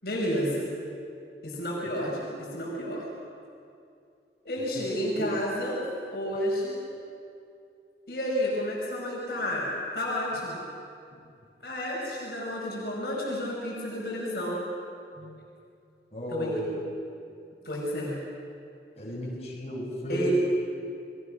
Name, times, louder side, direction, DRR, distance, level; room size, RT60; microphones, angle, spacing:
voice 1, 0.0-0.7 1.4-3.1 4.4-5.8 6.1-6.8 8.1-10.6 11.6-14.6 16.3-16.6 17.6-18.1 20.1-20.3, equal, 60° left, -4 dB, 5.5 m, -31 dB
voice 2, 4.6-5.3 11.1-11.2 15.1-15.3 16.1-16.8 18.9-20.3, left 1 dB, 35° left, -5 dB, 6.6 m, -34 dB
29.5 x 22.0 x 6.2 m, 2.5 s
head